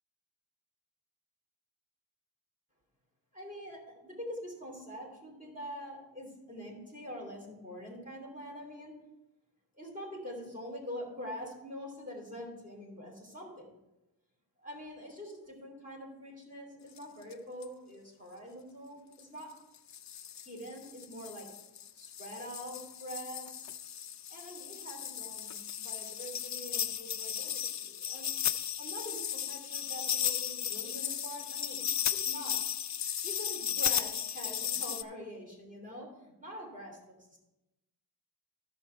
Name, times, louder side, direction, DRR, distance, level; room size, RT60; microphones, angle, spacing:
voice 1, 3.3-8.9 9.8-13.7 14.6-19.5 20.3-21.5 21.9-23.8 24.3-25.6 25.8-28.3 28.8-31.8 32.1-32.6 33.2-37.0 37.3-37.4, equal, 20° right, -2 dB, 3.4 m, -45 dB
sound 1, 17.0-17.1 17.3-17.4 17.6-17.7 19.2-19.3 19.9-35.0, left 9 dB, 45° left, 0.5 m, -35 dB
13.0 x 6.2 x 4.6 m, 0.97 s
wide cardioid pair, 105°, 42 cm